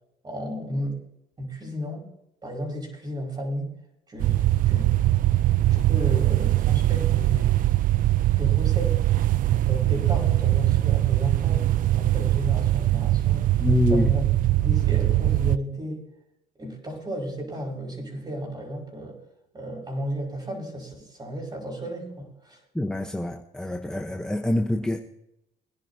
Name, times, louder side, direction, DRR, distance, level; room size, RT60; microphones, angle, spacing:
voice 1, 0.2-1.0 1.4-2.1 2.4-3.7 4.1-4.9 5.7-7.6 8.4-9.2 9.5-13.5 13.9-14.2 14.6-16.0 16.6-19.2 19.5-22.6, equal, 25° right, 0 dB, 5.0 m, -33 dB
sound 1, 4.2-15.6, right 15 dB, 55° right, 0.4 m, -22 dB
voice 2, 13.6-14.1 22.7-25.0, left 1 dB, 5° left, 5 dB, 0.8 m, -25 dB
23.5 x 10.5 x 2.7 m, 0.85 s
cardioid pair, 110°, 17 cm